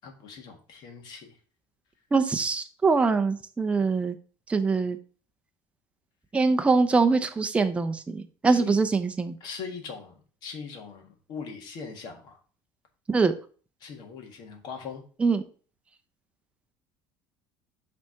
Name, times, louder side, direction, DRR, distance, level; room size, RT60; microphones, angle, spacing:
voice 1, 0.0-1.3 8.4-8.8 9.4-10.1 10.4-11.0 11.3-12.4 13.8-15.0, left 5 dB, 55° left, 1.6 m, -40 dB
voice 2, 2.1-4.1 4.5-5.0 6.3-9.3 13.1-13.3 15.2-15.4, right 4 dB, 15° right, 0.6 m, -23 dB
5.9 x 3.5 x 5.7 m
cardioid pair, 125°, 9 cm